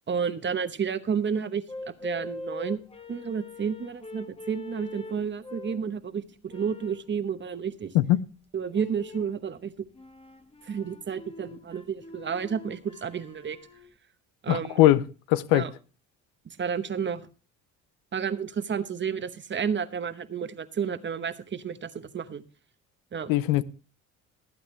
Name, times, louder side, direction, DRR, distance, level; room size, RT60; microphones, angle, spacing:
voice 1, 0.1-2.8 3.1-7.9 8.5-9.9 10.7-13.6 14.4-14.8 15.5-15.7 16.5-17.3 18.1-22.4 23.1-23.3, right 7 dB, 35° right, 1.0 m, -31 dB
sound 1, 1.7-5.9 6.5-7.1 8.7-9.4 9.9-13.9, left 2 dB, 15° left, 1.1 m, -43 dB
voice 2, 14.5-15.0 15.3-15.6 23.3-23.6, left 15 dB, 90° left, 0.7 m, -20 dB
19.0 x 8.7 x 3.2 m
cardioid pair, 95°, 33 cm